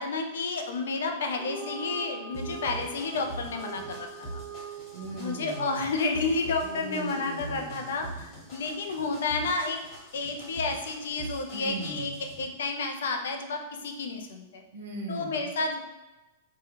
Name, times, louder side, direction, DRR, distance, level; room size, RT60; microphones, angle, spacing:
voice 1, 0.0-4.1 4.3-4.4 5.2-9.8 10.1-12.1 12.4-14.6 15.1-15.8, left 3 dB, 65° left, 4 dB, 0.4 m, -31 dB
sound 1, 1.3-7.9, right 3 dB, 10° right, 1.0 m, -43 dB
sound 2, 2.3-12.4, right 2 dB, 40° left, 1.4 m, -43 dB
voice 2, 4.5-5.9 6.6-7.9 11.5-12.2 14.7-15.5, right 2 dB, 65° right, 2 dB, 0.6 m, -39 dB
3.4 x 2.2 x 2.9 m, 1.1 s
figure-of-eight pair, 100°, 0 cm